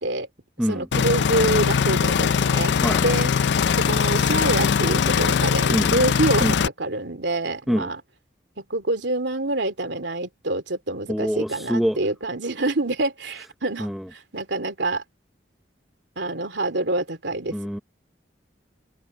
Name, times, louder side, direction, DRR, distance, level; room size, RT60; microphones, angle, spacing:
voice 1, 0.7-2.8 3.0-3.3 3.9-8.0 8.6-15.0 16.2-17.5, right 2 dB, 80° right, 2.5 m, -26 dB
sound 1, 0.9-6.7, left 6 dB, 70° left, 0.4 m, -21 dB
voice 2, 11.1-12.0 13.8-14.1 17.5-17.8, equal, ahead, 0.9 m, -25 dB
open air
head